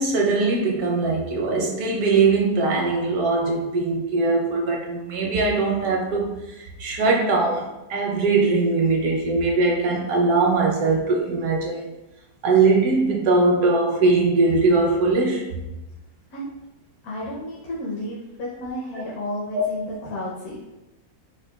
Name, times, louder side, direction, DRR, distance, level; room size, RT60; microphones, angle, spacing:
voice 1, 0.0-11.9 12.4-15.4 19.5-19.6, right 3 dB, 70° right, 0 dB, 1.1 m, -21 dB
voice 2, 17.0-20.6, left 1 dB, 75° left, -5 dB, 1.2 m, -32 dB
4.7 x 2.3 x 2.2 m, 0.98 s
omnidirectional pair, 1.6 m